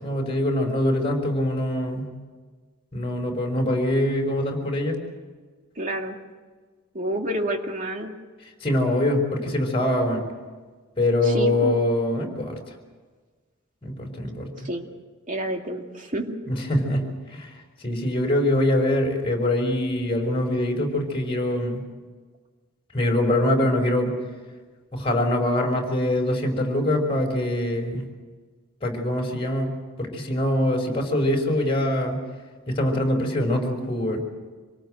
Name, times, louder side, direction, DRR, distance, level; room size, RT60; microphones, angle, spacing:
voice 1, 0.0-2.1 2.9-5.0 8.6-10.2 11.0-12.5 13.8-14.5 16.5-17.5 17.8-21.8 22.9-24.1 24.9-28.1 28.8-29.7 30.0-32.2 32.7-34.2, left 1 dB, 25° left, 2 dB, 5.1 m, -23 dB
voice 2, 5.8-6.2 6.9-8.1 11.2-11.8 14.4-14.8 15.3-16.4, right 1 dB, 40° right, 3 dB, 2.3 m, -29 dB
26.5 x 18.5 x 7.7 m, 1.4 s
head